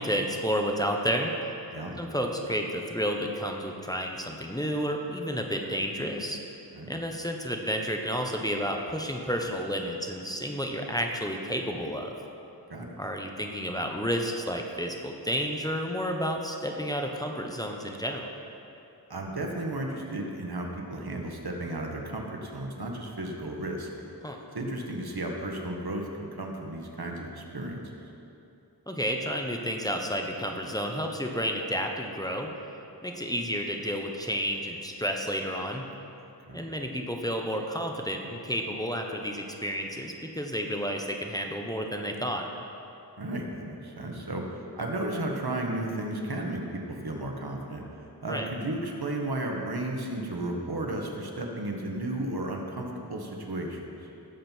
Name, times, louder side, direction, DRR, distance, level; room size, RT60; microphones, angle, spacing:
voice 1, 0.0-1.3 2.0-6.4 6.9-12.1 13.0-18.3 24.2-24.4 28.9-32.5 33.0-35.8 36.5-42.5 48.3-48.5, equal, 10° left, 1 dB, 1.2 m, -31 dB
voice 2, 19.1-23.9 24.5-27.8 36.5-36.7 43.2-47.8 48.2-53.8, right 1 dB, 65° right, 1 dB, 1.6 m, -34 dB
18.0 x 7.7 x 4.6 m, 2.8 s
wide cardioid pair, 45°, 41 cm